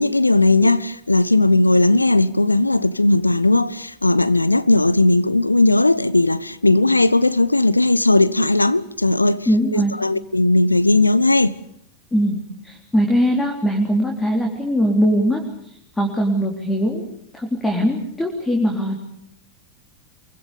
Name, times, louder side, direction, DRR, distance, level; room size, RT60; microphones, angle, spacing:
voice 1, 0.0-9.5 9.7-11.6, left 2 dB, 85° left, 1.0 m, -17 dB
voice 2, 9.5-9.9 12.1-15.4 16.0-17.0 17.3-19.0, equal, 10° left, 3.8 m, -20 dB
26.0 x 23.5 x 6.9 m
figure-of-eight pair, 90°, 0 cm